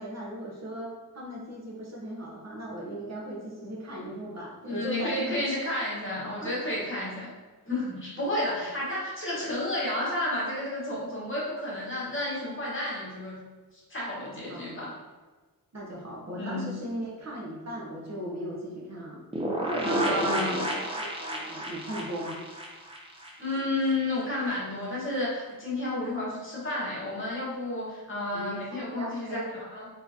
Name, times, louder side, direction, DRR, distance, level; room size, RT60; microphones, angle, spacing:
voice 1, 0.0-5.4 6.1-6.5 14.5-14.8 15.7-19.2 19.6-22.4 28.3-29.5, right 1 dB, 45° right, -4 dB, 1.0 m, -36 dB
voice 2, 4.6-7.3 7.7-13.4 13.9-14.9 16.4-16.7 19.8-20.6 23.4-29.9, left 1 dB, 35° left, -6 dB, 1.4 m, -31 dB
sound 1, 19.3-23.9 24.2-24.3 24.5-24.6, equal, 15° right, 0.6 m, -32 dB
4.3 x 3.2 x 2.8 m, 1.3 s
wide cardioid pair, 110°, 35 cm